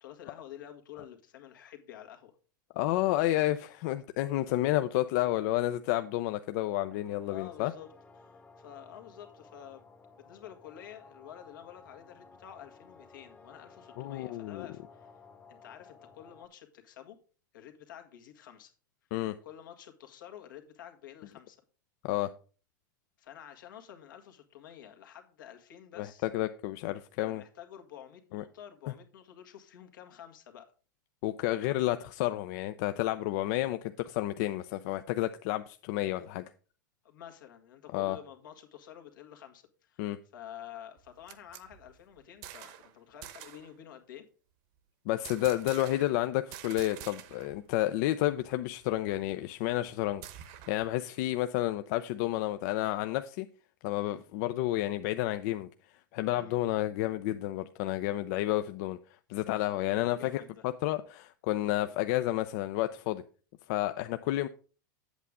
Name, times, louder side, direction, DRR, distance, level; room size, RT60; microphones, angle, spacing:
voice 1, 0.0-2.4 7.3-7.9 8.2-9.8 10.1-15.1 15.5-17.2 17.5-18.7 19.4-21.6 23.2-26.3 27.2-30.7 37.0-44.3 56.3-56.6 59.9-60.7, left 10 dB, 80° left, 1.8 m, -49 dB
voice 2, 2.8-7.7 14.0-14.7 19.1-19.4 22.0-22.3 26.0-27.4 28.3-28.4 31.2-36.4 37.9-38.2 40.0-40.2 45.1-50.2 50.7-53.5 53.8-55.7 56.1-59.0 59.3-60.4 60.8-63.2 63.7-64.5, left 15 dB, 60° left, 0.5 m, -30 dB
sound 1, 6.8-16.5, left 4 dB, 10° left, 0.9 m, -56 dB
sound 2, 41.0-42.9 43.2-43.7 45.2-46.2 46.5-47.6 47.9-48.0 48.3-50.9, right 11 dB, 55° right, 1.0 m, -48 dB
8.3 x 8.1 x 3.6 m
hypercardioid pair, 120°, 11 cm